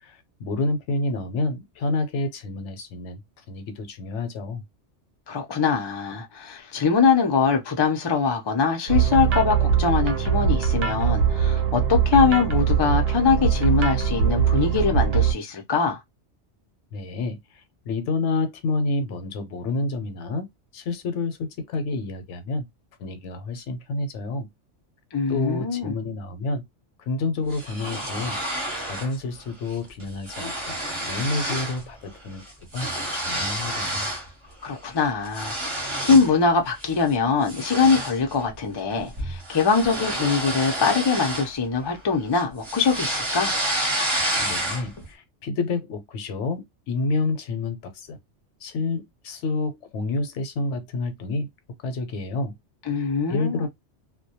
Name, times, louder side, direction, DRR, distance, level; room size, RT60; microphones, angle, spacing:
voice 1, 0.0-3.2 3.5-4.6 16.9-20.5 20.7-22.7 23.0-24.5 25.3-26.6 27.0-28.4 28.8-30.8 31.0-32.4 32.7-34.1 44.4-48.2 48.6-51.5 51.8-52.6 52.9-53.7, left 3 dB, 75° left, 0.9 m, -29 dB
voice 2, 5.3-16.0 25.1-25.9 34.6-43.5 52.9-53.7, left 5 dB, 45° left, 0.3 m, -22 dB
sound 1, 8.9-15.3, right 7 dB, 65° right, 0.7 m, -21 dB
sound 2, 27.5-29.2 29.5-29.8 30.0-31.8 32.1-34.3 34.7-36.4 36.8-37.0 37.5-42.0 42.3-45.0, right 1 dB, 30° right, 0.7 m, -29 dB
2.2 x 2.1 x 2.7 m
omnidirectional pair, 1.2 m